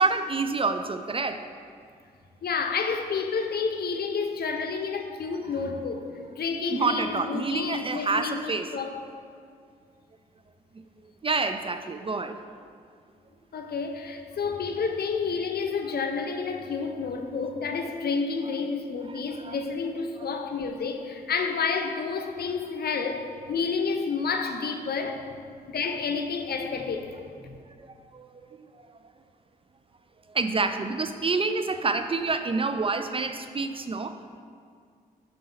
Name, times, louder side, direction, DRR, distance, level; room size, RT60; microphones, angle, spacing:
voice 1, 0.0-1.5 5.3-5.4 6.7-8.8 11.2-12.4 19.1-19.6 27.8-28.3 28.6-29.0 30.3-34.4, right 4 dB, 25° right, 9 dB, 0.4 m, -28 dB
voice 2, 2.4-9.0 13.5-25.3 25.7-27.6, left 5 dB, 50° left, 5 dB, 0.7 m, -30 dB
5.4 x 4.0 x 5.3 m, 2.2 s
hypercardioid pair, 40°, 20 cm